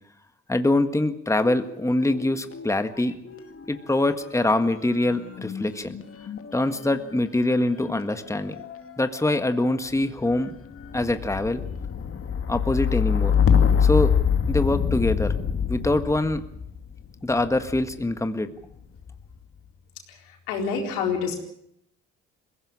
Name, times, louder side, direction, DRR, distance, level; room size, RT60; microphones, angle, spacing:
voice 1, 0.5-3.1 3.7-6.0 6.5-8.6 9.0-10.5 10.9-11.6 12.5-13.3 13.8-14.1 14.5-15.3 15.7-16.4 17.2-18.5, left 2 dB, 10° left, 9 dB, 1.7 m, -24 dB
sound 1, 1.3-2.7 3.0-18.0 18.8-19.3, left 7 dB, 45° left, 2.3 m, -27 dB
voice 2, 20.1-21.4, left 6 dB, 90° left, 2 dB, 4.2 m, -28 dB
22.0 x 16.5 x 8.6 m, 0.74 s
supercardioid pair, 65°, 32 cm